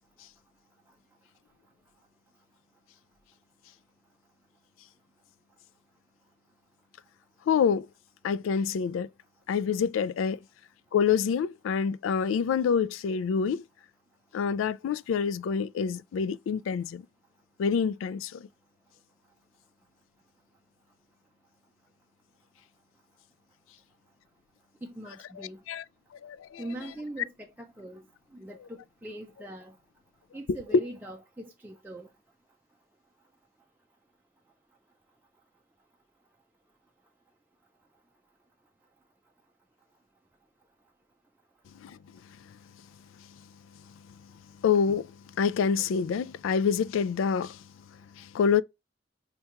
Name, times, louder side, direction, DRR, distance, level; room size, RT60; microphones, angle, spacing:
voice 1, 7.5-7.9 8.2-9.1 9.5-10.4 10.9-13.6 14.3-17.1 17.6-18.5 25.4-25.8 26.1-26.6 30.5-30.8 41.7-42.0 42.2-42.6 43.2-43.4 43.9-44.3 44.6-47.6 47.9-48.6, left 6 dB, 80° left, 0.3 m, -27 dB
voice 2, 24.8-25.6 26.6-27.3 27.6-28.0 28.3-29.7 30.3-32.1, right 1 dB, 10° right, 0.4 m, -41 dB
5.7 x 2.3 x 2.8 m
head